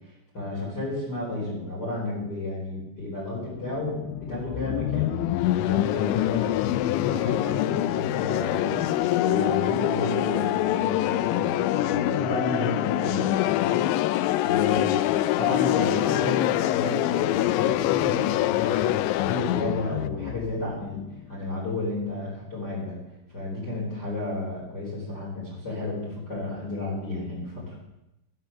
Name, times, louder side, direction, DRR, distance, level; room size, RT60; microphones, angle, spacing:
voice 1, 0.3-4.0 4.3-8.8 9.2-13.9 14.4-14.9 15.4-21.0 21.3-23.0 23.3-27.7, left 2 dB, 20° left, -6 dB, 4.8 m, -32 dB
sound 1, 3.5-21.3, left 14 dB, 85° left, 2.9 m, -25 dB
Bass guitar, 9.2-13.1, right 7 dB, 85° right, 1.0 m, -41 dB
11.5 x 10.0 x 7.0 m, 0.88 s
omnidirectional pair, 5.4 m